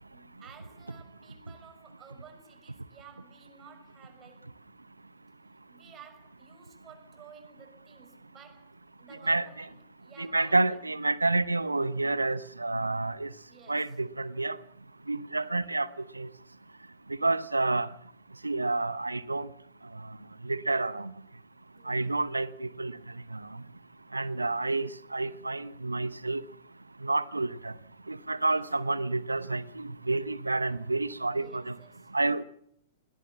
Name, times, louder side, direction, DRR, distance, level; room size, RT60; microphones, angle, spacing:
voice 1, 0.1-4.4 5.7-10.8 13.5-14.0 21.7-22.0 28.4-28.6 29.6-30.0 31.3-32.1, right 6 dB, 25° right, 6.6 m, -54 dB
voice 2, 9.2-9.7 10.2-13.3 13.7-14.6 15.1-15.9 16.2-16.3 17.2-17.9 18.4-19.5 20.4-21.1 21.9-22.9 24.1-26.4 27.0-27.7 28.1-31.7 32.1-32.4, right 2 dB, 85° right, 0.9 m, -29 dB
20.5 x 18.0 x 7.3 m
figure-of-eight pair, 105°, 0 cm